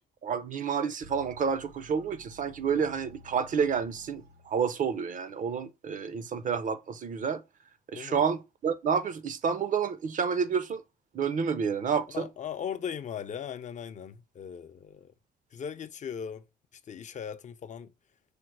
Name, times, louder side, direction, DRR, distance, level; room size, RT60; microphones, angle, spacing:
voice 1, 0.2-7.4 7.9-10.8 11.1-12.3, right 6 dB, 50° right, 0.6 m, -29 dB
sound 1, 1.0-4.8, right 1 dB, 80° right, 1.5 m, -53 dB
voice 2, 7.9-8.3 12.1-15.1 15.5-16.4 16.9-17.9, left 8 dB, 45° left, 0.5 m, -38 dB
5.0 x 2.1 x 4.5 m
cardioid pair, 95°, 17 cm